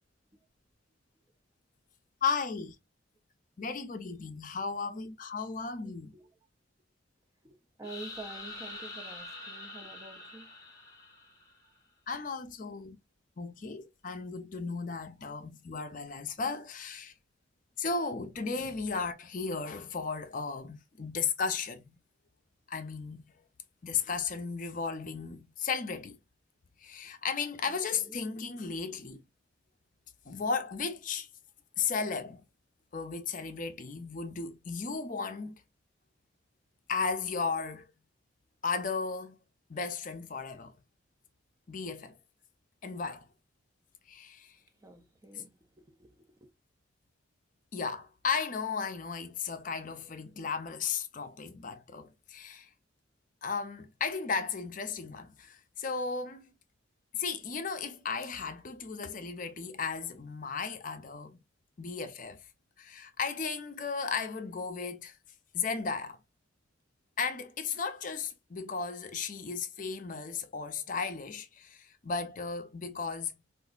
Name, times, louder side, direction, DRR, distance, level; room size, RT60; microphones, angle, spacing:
voice 1, 2.2-2.8 3.6-6.1 12.1-13.0 13.4-17.1 17.8-22.0 22.7-23.3 23.8-26.2 26.8-29.2 30.3-31.3 31.8-32.4 32.9-35.5 36.9-37.9 38.6-39.4 39.7-40.7 41.7-42.2 42.8-43.3 44.1-44.6 45.3-45.5 47.7-52.7 53.4-56.5 57.1-61.4 61.8-62.4 62.8-65.2 65.5-66.2 67.2-73.3, left 5 dB, 40° left, 0.5 m, -35 dB
voice 2, 7.4-10.5 11.6-11.7 18.5-18.7 27.7-28.2 33.4-33.6 44.8-46.5, right 2 dB, 15° right, 0.4 m, -49 dB
sound 1, 7.8-11.7, left 2 dB, 20° left, 0.8 m, -45 dB
3.9 x 2.5 x 2.3 m
head